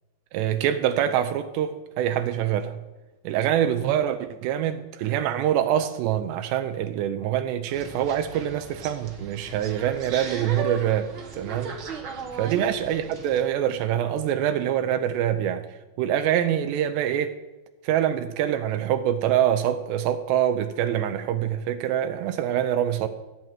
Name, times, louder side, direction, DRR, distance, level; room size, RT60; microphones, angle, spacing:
voice 1, 0.3-2.8 3.2-11.8 12.3-15.6 16.0-17.4 17.8-23.1, right 10 dB, 85° right, 2.8 m, -25 dB
sound 1, 7.7-13.4, right 5 dB, 65° right, 1.2 m, -37 dB
15.5 x 6.2 x 9.0 m
omnidirectional pair, 4.9 m